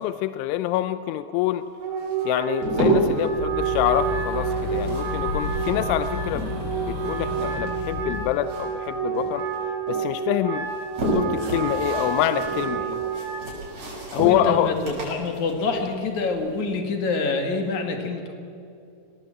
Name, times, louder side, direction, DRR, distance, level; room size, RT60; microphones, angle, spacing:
voice 1, 0.0-1.7 2.3-6.5 6.9-9.5 9.9-10.7 11.0-13.0 14.1-14.8, left 13 dB, 90° left, 12 dB, 3.1 m, -26 dB
Wind instrument woodwind instrument, 1.8-13.5, right 6 dB, 55° right, 5.2 m, -29 dB
sound 1, 2.0-3.3 4.4-6.7 7.0-8.9 9.1-10.0 10.5-16.6, right 1 dB, 35° right, 7.1 m, -30 dB
sound 2, 3.3-8.2, left 4 dB, 35° left, 5.3 m, -32 dB
voice 2, 14.2-18.3, left 3 dB, 50° left, 5 dB, 2.6 m, -26 dB
22.5 x 18.0 x 7.7 m, 2.6 s
omnidirectional pair, 5.4 m